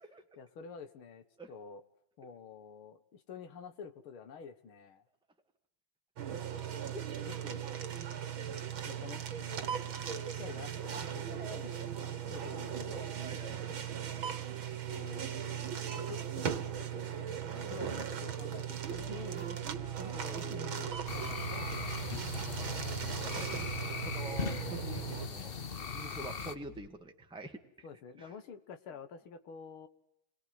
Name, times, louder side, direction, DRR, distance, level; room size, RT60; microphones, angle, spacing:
voice 1, 0.4-1.8 2.2-5.0 7.1-7.7 8.8-13.1 14.8-19.4 20.0-22.1 27.8-29.9, left 6 dB, 90° left, 9 dB, 2.4 m, -49 dB
sound 1, 6.2-25.3, right 9 dB, 75° right, 2.5 m, -38 dB
voice 2, 13.2-13.8 19.7-20.3 22.3-23.5 23.9-25.6 25.9-27.9 28.2-28.3, right 1 dB, ahead, 4 dB, 2.0 m, -47 dB
sound 2, 18.9-26.9, left 10 dB, 65° left, 2.4 m, -55 dB
sound 3, 21.1-26.5, left 5 dB, 35° left, 1.0 m, -39 dB
28.5 x 22.0 x 9.5 m, 0.80 s
omnidirectional pair, 2.3 m